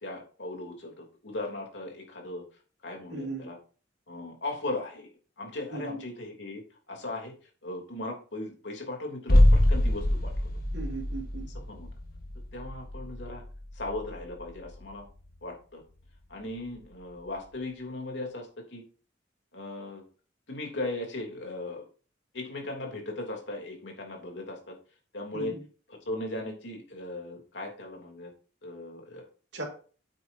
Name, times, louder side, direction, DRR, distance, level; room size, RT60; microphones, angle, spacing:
voice 1, 0.0-2.4 2.8-3.6 4.1-5.1 5.4-6.6 6.9-7.3 7.6-10.3 11.7-11.9 12.5-13.4 13.7-15.1 15.4-15.8 16.3-18.8 19.5-20.0 20.5-21.9 22.3-24.8 25.1-25.5 26.0-28.3 28.6-29.2, left 2 dB, 75° left, 1 dB, 3.2 m, -37 dB
voice 2, 3.1-3.5 5.7-6.0 10.7-11.5 25.3-25.6 29.5-29.6, right 2 dB, 70° right, 0 dB, 2.7 m, -37 dB
sound 1, 9.3-15.0 15.3-15.4, left 1 dB, 50° left, 1.3 m, -25 dB
9.4 x 8.9 x 2.8 m, 0.38 s
head